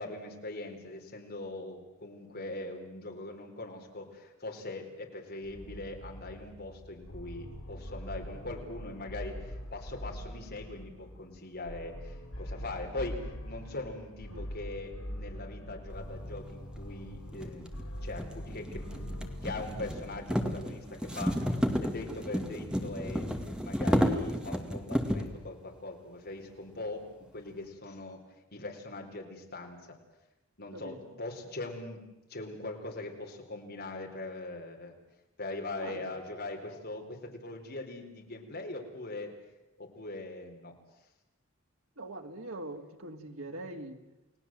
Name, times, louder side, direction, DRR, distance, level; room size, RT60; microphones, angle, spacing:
voice 1, 0.0-13.2 13.4-17.7 18.0-21.4 21.8-23.3 23.6-27.0 27.3-28.2 28.5-30.0 30.6-32.0 32.3-34.9 35.4-39.3 39.8-40.7, left 2 dB, 50° left, 2 dB, 4.5 m, -41 dB
sound 1, 5.4-21.1, equal, 80° left, 7.1 m, -43 dB
sound 2, 16.5-16.6 17.3-25.4, equal, 5° right, 2.3 m, -32 dB
voice 2, 35.8-36.1 42.0-44.0, right 2 dB, 85° right, 4 dB, 2.7 m, -42 dB
29.5 x 19.0 x 7.8 m, 0.98 s
head